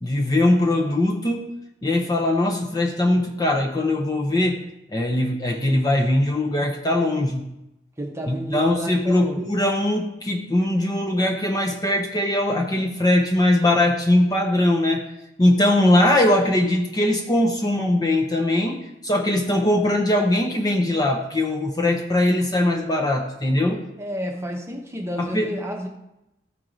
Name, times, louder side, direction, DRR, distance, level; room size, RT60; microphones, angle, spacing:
voice 1, 0.0-4.6 4.9-7.4 8.3-15.0 15.4-23.9 25.2-25.5, left 1 dB, 20° left, 1 dB, 0.7 m, -21 dB
voice 2, 8.0-9.5 24.0-25.9, equal, 15° right, 1 dB, 1.0 m, -30 dB
13.5 x 4.7 x 3.8 m, 0.89 s
head